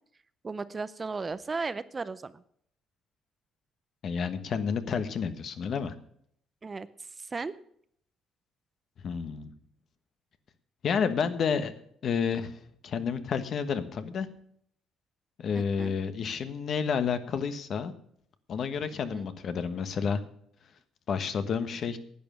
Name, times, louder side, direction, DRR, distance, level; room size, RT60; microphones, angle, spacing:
voice 1, 0.4-2.4 6.6-7.5 15.5-16.0 19.1-19.3, right 4 dB, 25° right, 15 dB, 0.5 m, -36 dB
voice 2, 4.0-5.9 9.0-9.5 10.8-11.7 12.0-14.3 15.4-17.9 18.5-20.2 21.1-22.0, left 6 dB, 50° left, 10 dB, 1.2 m, -30 dB
11.0 x 9.2 x 6.3 m, 0.66 s
cardioid pair, 130°, 0 cm